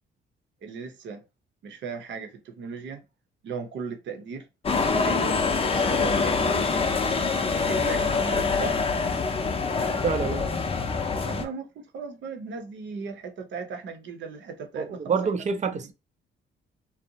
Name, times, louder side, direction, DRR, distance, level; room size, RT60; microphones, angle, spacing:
voice 1, 0.6-1.2 1.6-3.0 3.4-4.5 5.0-7.1 7.6-8.8 11.3-15.2 15.6-15.9, right 5 dB, 65° right, 0.7 m, -37 dB
sound 1, 4.6-11.4, left 4 dB, 30° left, 0.5 m, -25 dB
voice 2, 10.0-10.5 14.8-15.9, right 6 dB, 35° right, 0.5 m, -27 dB
2.6 x 2.0 x 2.7 m
cardioid pair, 90°, 20 cm